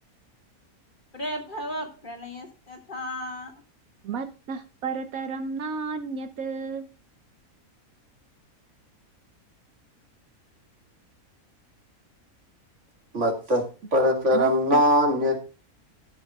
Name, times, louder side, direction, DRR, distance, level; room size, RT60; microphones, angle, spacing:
voice 1, 1.1-3.5, equal, 35° left, 2.2 m, -35 dB
voice 2, 4.0-6.9 14.3-14.8, right 5 dB, 70° right, 1.3 m, -32 dB
voice 3, 13.1-13.6 13.9-15.4, equal, 55° right, 2.3 m, -21 dB
14.0 x 8.5 x 2.3 m
omnidirectional pair, 1.5 m